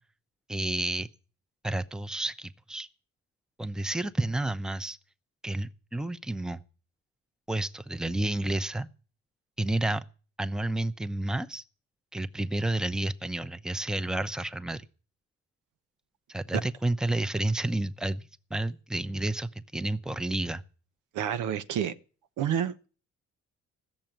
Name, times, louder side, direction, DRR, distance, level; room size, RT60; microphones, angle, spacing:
voice 1, 0.5-1.1 1.6-2.9 3.6-5.0 5.4-6.6 7.5-8.9 9.6-10.1 10.4-11.6 12.1-14.9 16.3-20.6, right 1 dB, ahead, 0.8 m, -30 dB
voice 2, 21.1-21.9 22.4-22.9, right 9 dB, 85° right, 1.0 m, -29 dB
16.0 x 6.9 x 9.1 m
cardioid pair, 90°, 30 cm